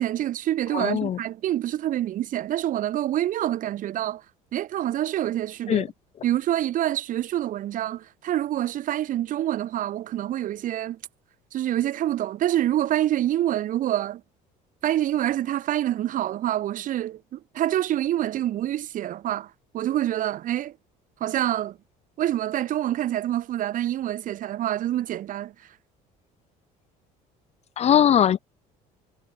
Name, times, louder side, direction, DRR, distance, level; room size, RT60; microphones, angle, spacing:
voice 1, 0.0-4.2 4.5-5.8 6.2-11.0 11.5-14.2 14.8-20.8 21.2-21.8 22.2-25.5, right 12 dB, 55° right, 0.7 m, -26 dB
voice 2, 0.7-1.2 5.7-5.9 27.8-28.4, left 9 dB, 40° left, 0.6 m, -20 dB
cardioid pair, 100°, 17 cm